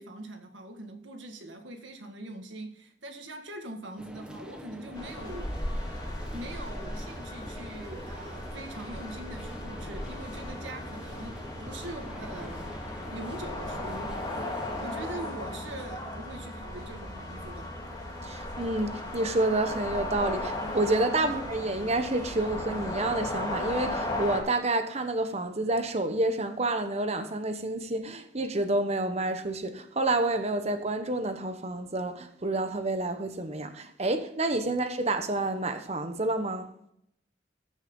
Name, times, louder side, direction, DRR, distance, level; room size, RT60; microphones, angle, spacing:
voice 1, 0.0-5.5 6.0-17.7 21.2-21.3, right 1 dB, 85° right, 1.9 m, -43 dB
sound 1, 4.0-14.9, equal, 5° right, 1.2 m, -45 dB
sound 2, 5.0-24.4, left 1 dB, 20° left, 2.3 m, -36 dB
voice 2, 18.2-36.7, right 2 dB, 35° right, 1.1 m, -29 dB
15.0 x 6.4 x 3.8 m
head